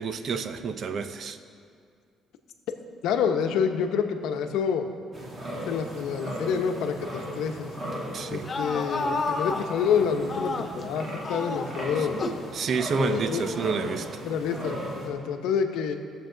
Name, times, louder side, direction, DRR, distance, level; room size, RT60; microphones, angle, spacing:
voice 1, 0.0-1.4 8.1-8.5 12.0-14.2, right 5 dB, 50° right, 10 dB, 0.6 m, -30 dB
voice 2, 3.0-4.9 5.5-7.7 8.3-12.2 12.9-13.4 14.2-16.0, left 7 dB, 85° left, 5 dB, 0.9 m, -28 dB
sound 1, 5.1-15.1, equal, 25° right, 2.3 m, -37 dB
sound 2, 8.3-10.9 11.2-12.5 13.1-14.1, left 3 dB, 30° left, 0.8 m, -32 dB
19.0 x 7.3 x 3.9 m, 2.2 s
cardioid pair, 135°, 0 cm